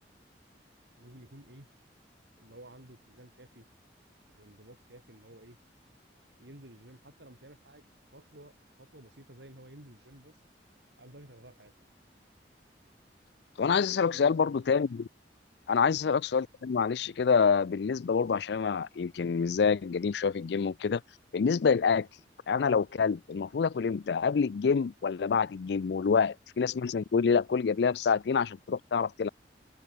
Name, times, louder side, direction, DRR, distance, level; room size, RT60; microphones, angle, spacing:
voice 1, 1.0-1.7 2.4-3.7 4.3-5.6 6.4-7.8 8.1-8.5 8.8-10.4 11.0-11.7 14.0-14.5, right 1 dB, 70° right, 4.8 m, -52 dB
voice 2, 13.6-15.1 15.7-21.0 21.3-22.1 22.5-29.3, left 6 dB, 65° left, 0.4 m, -27 dB
open air
head